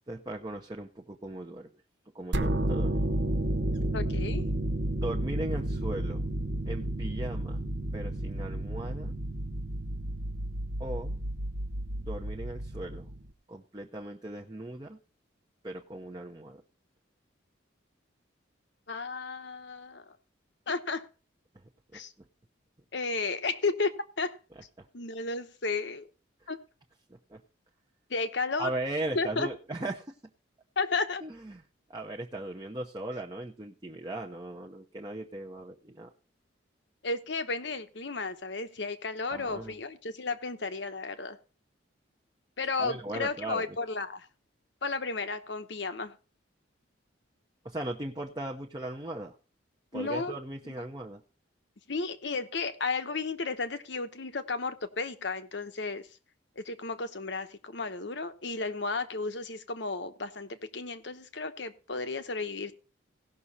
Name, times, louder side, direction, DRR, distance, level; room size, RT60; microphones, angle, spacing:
voice 1, 0.1-1.7 2.1-3.1 5.0-6.3 6.7-7.6 7.9-9.1 10.8-11.2 12.0-13.1 13.5-15.0 15.6-16.6 21.9-22.0 24.8-24.9 27.3-27.4 28.6-30.1 31.2-31.6 31.9-36.1 39.3-39.8 42.8-43.8 47.6-49.3 49.9-51.2, right 1 dB, 20° right, 0 dB, 0.7 m, -38 dB
sound 1, 2.3-13.3, right 1 dB, 60° right, 0.8 m, -31 dB
voice 2, 3.9-4.4 18.9-20.0 20.7-21.1 21.9-22.1 22.9-24.4 24.9-26.0 26.5-26.6 28.1-28.7 29.1-29.5 30.8-31.2 37.0-41.4 42.6-44.2 44.8-46.1 49.9-50.3 50.6-50.7 51.9-56.1 56.6-62.7, left 3 dB, 60° left, 10 dB, 1.0 m, -33 dB
17.0 x 6.2 x 4.1 m, 0.36 s
head